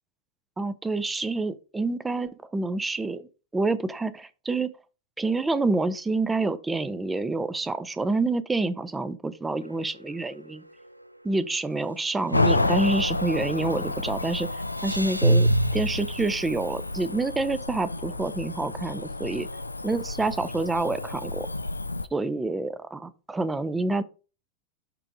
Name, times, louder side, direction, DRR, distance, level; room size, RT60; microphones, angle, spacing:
voice 1, 0.6-3.3 3.5-4.7 5.2-10.6 11.2-14.5 14.8-19.5 19.8-21.5 22.1-24.0, right 3 dB, 10° right, 0.6 m, -27 dB
sound 1, 9.7-10.0 10.4-10.5 12.3-13.7 14.1-17.1, right 1 dB, 90° right, 0.4 m, -27 dB
Cricket / Motor vehicle (road), 12.3-22.1, left 2 dB, 85° left, 0.4 m, -30 dB
6.8 x 3.7 x 4.6 m
figure-of-eight pair, 90°, 0 cm